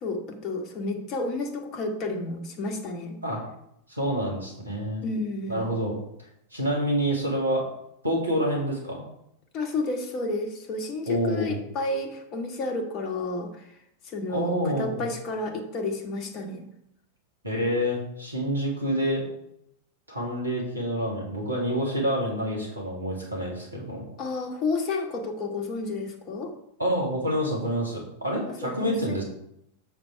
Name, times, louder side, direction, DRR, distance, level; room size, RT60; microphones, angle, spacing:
voice 1, 0.0-3.2 5.0-5.7 9.5-13.6 14.0-16.6 24.2-26.5 28.5-29.2, left 2 dB, 35° left, 4 dB, 1.5 m, -31 dB
voice 2, 3.9-5.0 5.5-5.9 6.5-7.6 8.0-9.0 11.1-11.6 14.3-15.1 17.4-19.2 20.1-24.0 26.8-29.2, equal, 80° right, -2 dB, 2.4 m, -27 dB
7.2 x 5.8 x 4.7 m, 0.77 s
figure-of-eight pair, 90°, 0 cm